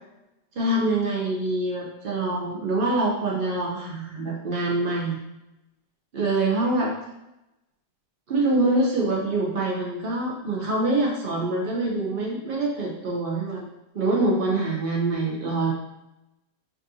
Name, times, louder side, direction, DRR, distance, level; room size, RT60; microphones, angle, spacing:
voice 1, 0.5-5.2 6.1-6.9 8.3-13.7 13.9-15.7, right 2 dB, 70° right, -3 dB, 0.5 m, -25 dB
7.0 x 2.5 x 2.7 m, 0.94 s
omnidirectional pair, 1.8 m